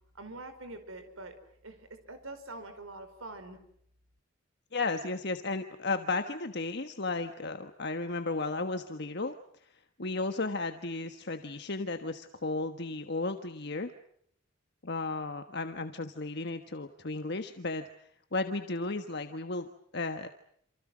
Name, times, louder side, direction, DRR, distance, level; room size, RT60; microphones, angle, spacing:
voice 1, 0.1-1.3 1.6-3.6, right 2 dB, 90° right, 8 dB, 4.8 m, -44 dB
voice 2, 4.7-9.3 9.6-9.7 10.0-13.9 14.8-17.8 18.3-19.7 19.9-20.3, left 3 dB, 55° left, 7 dB, 1.4 m, -34 dB
28.5 x 28.0 x 6.3 m, 0.69 s
head